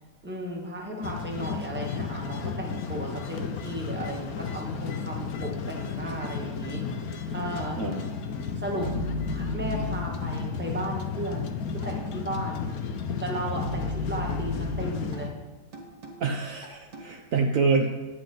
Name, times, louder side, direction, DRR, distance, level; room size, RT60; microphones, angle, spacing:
voice 1, 0.2-6.8 7.3-7.8 8.5-8.9 9.3-12.7 13.2-15.3, right 1 dB, 5° right, -2 dB, 1.3 m, -35 dB
sound 1, 1.0-15.3, left 5 dB, 60° left, 1.0 m, -33 dB
voice 2, 7.8-8.1 16.2-17.9, right 4 dB, 75° right, 2 dB, 0.7 m, -26 dB
sound 2, 8.8-10.4 11.8-11.9 13.6-15.2 15.7-16.2 16.6-17.1, left 2 dB, 55° right, 2.0 m, -34 dB
9.7 x 9.4 x 3.9 m, 1.2 s
omnidirectional pair, 2.3 m